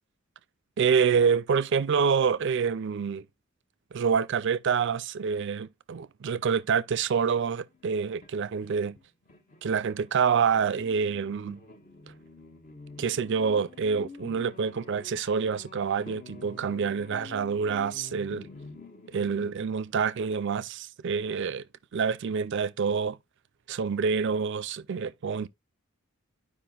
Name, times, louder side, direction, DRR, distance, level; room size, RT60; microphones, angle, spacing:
voice 1, 0.8-3.2 3.9-9.0 9.6-11.6 13.0-18.5 19.1-21.6 21.9-23.2 23.7-25.5, right 6 dB, 60° right, 0.4 m, -27 dB
sound 1, 6.6-9.7 10.0-19.5, left 4 dB, 40° left, 1.0 m, -48 dB
12.0 x 4.9 x 2.3 m
head